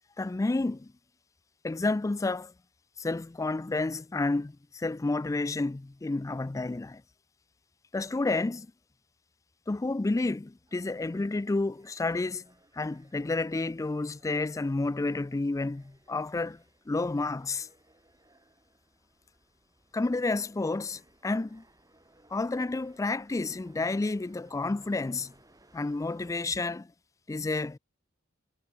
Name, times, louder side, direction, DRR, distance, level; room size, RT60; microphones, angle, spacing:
voice 1, 0.2-0.9 1.6-2.5 3.0-7.0 7.9-8.7 9.7-12.4 12.7-17.7 19.9-21.6 22.3-25.3 25.7-26.9 27.3-27.8, left 3 dB, 15° left, 0.3 m, -30 dB
sound 1, 10.5-26.4, right 1 dB, 20° right, 6.7 m, -63 dB
head